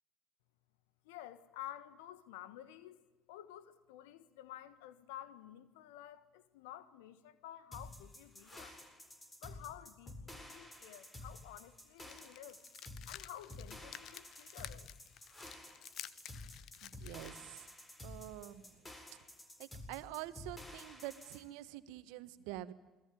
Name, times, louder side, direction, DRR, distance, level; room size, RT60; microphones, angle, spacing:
voice 1, 1.0-3.0 3.3-8.8 9.4-12.6 13.1-14.9, left 12 dB, 75° left, 1.4 m, -51 dB
sound 1, 7.7-21.4, left 1 dB, 25° left, 8.0 m, -51 dB
sound 2, 12.0-17.3, left 11 dB, 60° left, 1.0 m, -52 dB
voice 2, 16.8-17.7 18.0-18.9 19.6-22.7, right 15 dB, 70° right, 1.4 m, -47 dB
28.5 x 21.5 x 9.3 m
hypercardioid pair, 55°, 0 cm